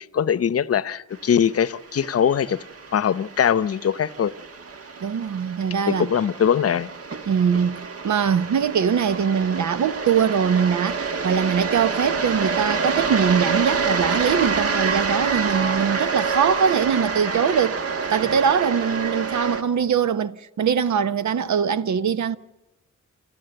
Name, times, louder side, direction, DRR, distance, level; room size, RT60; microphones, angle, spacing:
voice 1, 0.0-2.6 2.9-4.3 5.9-6.9, left 8 dB, 50° left, 0.8 m, -21 dB
sound 1, 1.3-19.6, right 4 dB, 50° right, 1.7 m, -27 dB
voice 2, 5.0-6.1 7.3-17.8 18.1-22.4, right 7 dB, 70° right, 1.0 m, -22 dB
29.5 x 12.5 x 7.9 m
cardioid pair, 95°, 30 cm